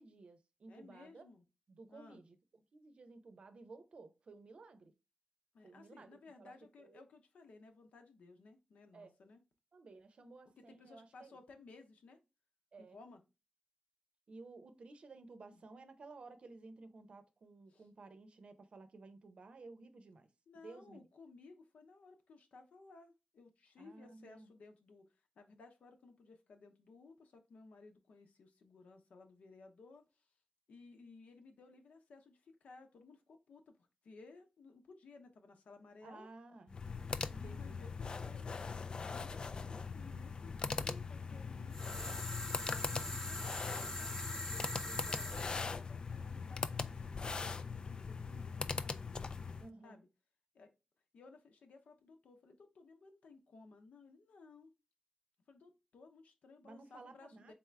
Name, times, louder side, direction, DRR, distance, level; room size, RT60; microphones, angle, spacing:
voice 1, 0.0-1.3 1.7-4.9 5.6-6.5 6.8-7.0 8.9-9.1 9.7-11.4 12.7-13.0 14.3-20.3 20.6-21.1 23.8-24.5 36.0-36.8 37.3-37.8 49.6-50.0 56.6-57.5, right 3 dB, 55° right, 0.7 m, -55 dB
voice 2, 0.7-1.4 1.9-2.2 5.5-9.4 10.6-12.2 12.8-13.2 15.5-15.6 17.7-17.8 20.5-30.3 30.7-36.3 37.1-47.1 47.3-49.1 49.8-50.1 50.5-50.7 51.1-54.7 55.5-57.5, left 3 dB, 80° left, 0.9 m, -59 dB
sound 1, 36.7-49.7, left 5 dB, 40° left, 0.3 m, -41 dB
sound 2, 41.7-45.7, left 1 dB, 20° left, 0.7 m, -43 dB
3.8 x 3.5 x 3.3 m
wide cardioid pair, 120°, 2 cm